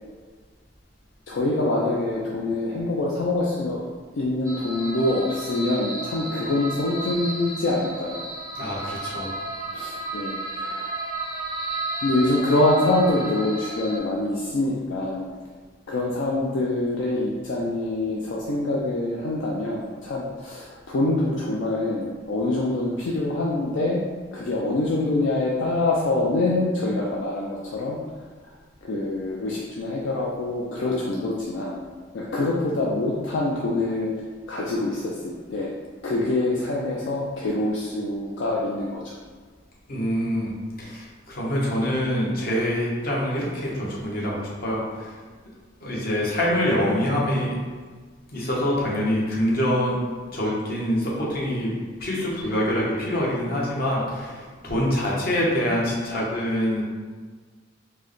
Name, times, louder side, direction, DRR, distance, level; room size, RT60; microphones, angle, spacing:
voice 1, 1.3-3.8 4.1-8.2 9.7-10.9 12.0-15.3 15.9-24.0 24.3-28.0 28.8-31.7 32.1-34.1 34.5-35.7 36.0-39.1, left 2 dB, 70° left, -4 dB, 0.4 m, -25 dB
sound 1, 4.4-14.0, right 2 dB, 20° right, 0.5 m, -33 dB
voice 2, 8.5-9.3 39.9-40.5 40.8-45.1 45.8-47.6 48.3-50.0 50.3-56.8, equal, 55° left, -5 dB, 0.9 m, -25 dB
4.4 x 2.1 x 3.0 m, 1.5 s
head